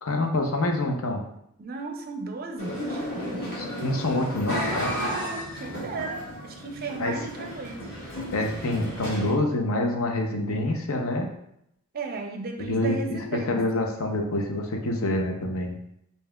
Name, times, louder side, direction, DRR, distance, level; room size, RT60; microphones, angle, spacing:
voice 1, 0.0-1.2 3.8-5.0 7.0-7.2 8.3-11.3 12.6-13.2 13.5-15.8, left 1 dB, 70° left, 2 dB, 0.6 m, -26 dB
voice 2, 1.6-3.6 5.0-7.9 11.9-13.7, right 3 dB, 40° right, 3 dB, 0.5 m, -35 dB
sound 1, 2.6-9.3, equal, 45° left, 1.1 m, -33 dB
5.4 x 2.7 x 2.3 m, 0.76 s
head